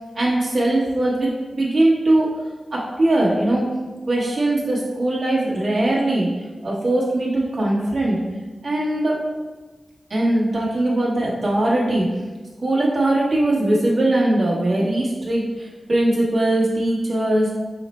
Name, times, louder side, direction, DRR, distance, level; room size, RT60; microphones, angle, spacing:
voice 1, 0.1-2.3 2.7-3.7 4.1-6.3 6.6-8.2 8.6-9.2 10.1-12.1 12.6-17.5, right 1 dB, 65° right, -5 dB, 1.4 m, -20 dB
5.5 x 2.1 x 4.3 m, 1.3 s
wide cardioid pair, 75°, 0 cm